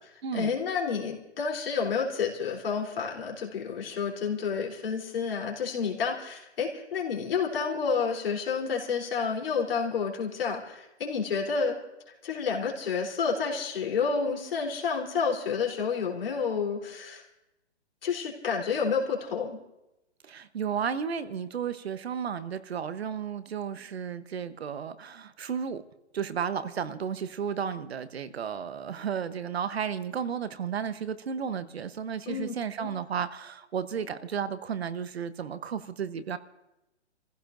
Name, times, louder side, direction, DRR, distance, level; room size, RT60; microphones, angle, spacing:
voice 1, 0.3-11.8 12.2-17.2 18.0-19.6 32.3-32.5 32.8-32.9, left 5 dB, 55° left, -1 dB, 3.6 m, -30 dB
voice 2, 20.2-25.8 26.1-36.4, right 7 dB, 65° right, 12 dB, 1.0 m, -33 dB
29.5 x 15.5 x 2.6 m, 0.92 s
hypercardioid pair, 160°, 34 cm